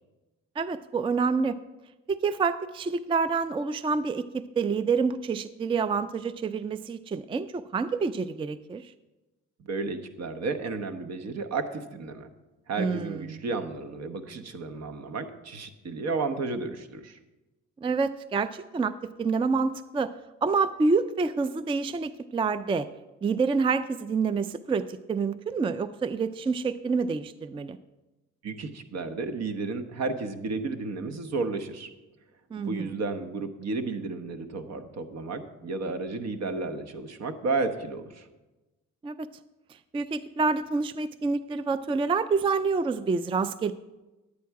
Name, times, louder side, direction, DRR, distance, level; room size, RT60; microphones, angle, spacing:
voice 1, 0.6-1.6 2.1-8.9 12.8-13.4 17.8-20.1 20.4-22.9 23.2-27.8 32.5-33.0 39.0-39.3 39.9-43.7, right 4 dB, 20° right, 14 dB, 0.3 m, -27 dB
voice 2, 9.6-12.3 12.7-17.2 28.4-31.9 32.5-38.3, right 3 dB, 60° right, 9 dB, 1.1 m, -32 dB
11.0 x 8.5 x 4.7 m, 1.1 s
cardioid pair, 90°, 30 cm